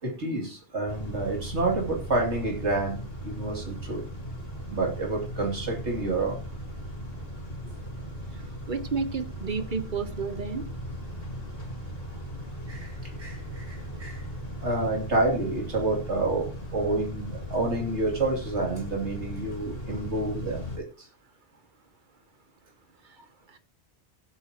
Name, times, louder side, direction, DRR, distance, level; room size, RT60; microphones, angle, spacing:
voice 1, 0.0-4.0 4.7-6.4 12.7-14.2 14.6-21.1, right 2 dB, 75° right, 2 dB, 3.1 m, -29 dB
Car / Idling / Accelerating revving vroom, 0.9-20.8, equal, 55° left, 2.8 m, -38 dB
voice 2, 8.7-10.6 23.5-23.6, right 5 dB, 45° right, 10 dB, 1.1 m, -31 dB
16.0 x 8.2 x 2.9 m, 0.31 s
omnidirectional pair, 1.2 m